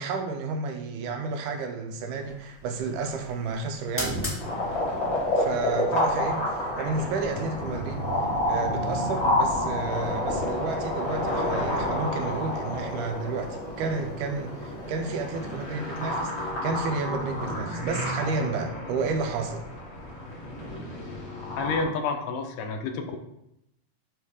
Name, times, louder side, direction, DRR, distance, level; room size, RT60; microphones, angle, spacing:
voice 1, 0.0-4.2 5.4-8.0 8.5-19.6, right 4 dB, 80° right, 5 dB, 2.1 m, -31 dB
sound 1, 2.1-17.4, equal, 10° left, 0.9 m, -40 dB
sound 2, 4.4-21.8, left 1 dB, 50° left, 2.9 m, -29 dB
voice 2, 21.6-23.2, left 4 dB, 80° left, 5 dB, 2.2 m, -29 dB
6.9 x 3.6 x 4.8 m, 0.81 s
omnidirectional pair, 3.8 m